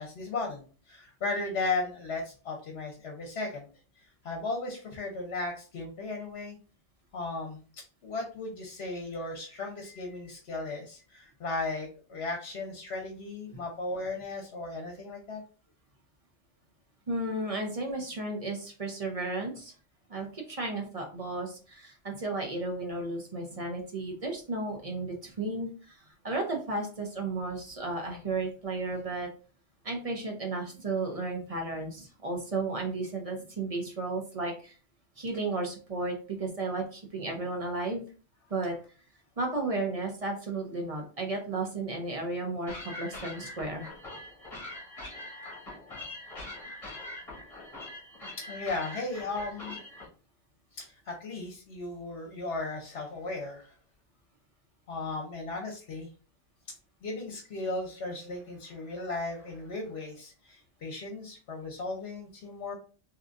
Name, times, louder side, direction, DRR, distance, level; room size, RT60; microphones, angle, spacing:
voice 1, 0.0-3.7 4.2-6.6 7.1-7.6 8.0-15.4 48.5-49.8 50.7-53.7 54.9-56.1 57.0-62.7, left 3 dB, 65° left, 1 dB, 1.0 m, -36 dB
voice 2, 17.1-19.7 20.1-29.3 29.8-34.7 35.2-38.0 38.5-38.8 39.4-43.9, right 2 dB, 35° right, 1 dB, 0.7 m, -34 dB
sound 1, 42.7-50.1, left 2 dB, 30° left, 1.4 m, -43 dB
3.7 x 2.8 x 2.4 m, 0.37 s
omnidirectional pair, 1.2 m